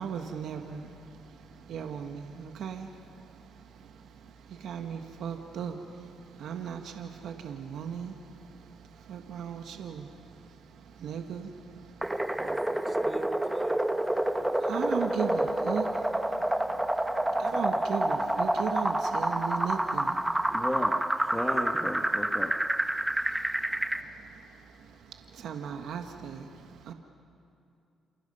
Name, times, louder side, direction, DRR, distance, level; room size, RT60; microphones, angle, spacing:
voice 1, 0.0-12.4 14.6-20.6 22.9-26.9, right 7 dB, 75° right, 4 dB, 1.5 m, -38 dB
sound 1, 12.0-24.0, right 1 dB, 10° right, 1.0 m, -28 dB
voice 2, 12.4-14.7 17.2-17.8, right 3 dB, 30° right, 5 dB, 1.9 m, -43 dB
voice 3, 20.5-22.6, left 1 dB, 5° left, 2 dB, 1.6 m, -34 dB
28.5 x 27.0 x 5.5 m, 2.5 s
cardioid pair, 90°, 0 cm